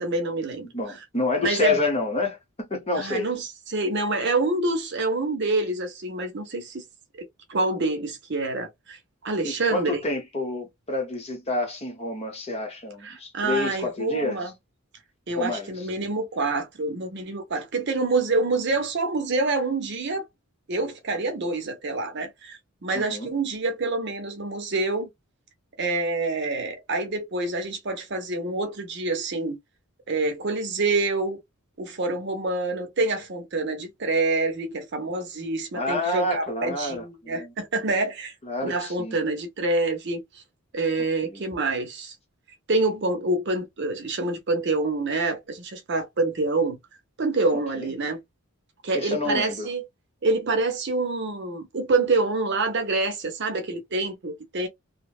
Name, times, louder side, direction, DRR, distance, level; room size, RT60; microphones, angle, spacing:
voice 1, 0.0-0.7 1.4-1.8 2.9-6.8 7.2-10.0 13.0-14.5 15.3-20.2 20.7-25.1 25.8-29.6 30.1-31.4 31.8-38.3 38.6-40.4 40.7-42.1 42.7-46.8 47.2-48.2 48.8-49.8 50.2-54.7, right 3 dB, 55° right, 0.7 m, -27 dB
voice 2, 0.6-3.3 9.4-14.4 15.4-15.9 22.9-23.3 35.7-37.5 38.4-39.2 41.2-41.4 47.7-47.9 48.9-49.7, left 2 dB, 30° left, 0.8 m, -29 dB
2.7 x 2.1 x 2.3 m
head